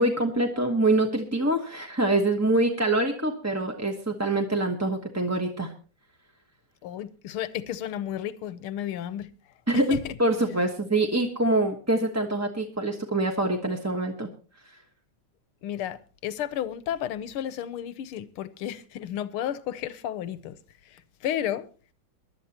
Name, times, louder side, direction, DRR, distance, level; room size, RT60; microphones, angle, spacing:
voice 1, 0.0-5.7 9.7-14.3, right 2 dB, 10° right, 0.8 m, -25 dB
voice 2, 6.8-9.3 9.7-10.0 15.6-20.6 20.9-21.7, left 10 dB, 90° left, 1.8 m, -32 dB
23.5 x 11.5 x 2.9 m
omnidirectional pair, 2.3 m